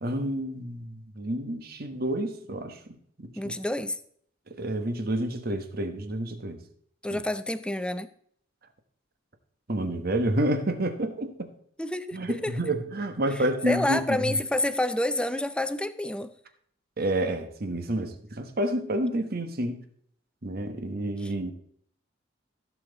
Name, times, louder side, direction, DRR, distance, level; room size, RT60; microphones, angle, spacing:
voice 1, 0.0-2.8 3.2-3.5 4.5-6.6 7.1-7.2 9.7-11.5 12.1-14.3 17.0-19.8 20.4-21.5, right 1 dB, 55° right, 1.3 m, -29 dB
voice 2, 3.4-4.0 7.0-8.1 11.8-12.6 13.4-16.3 21.2-21.3, left 1 dB, 5° left, 0.5 m, -28 dB
15.5 x 7.2 x 4.0 m
head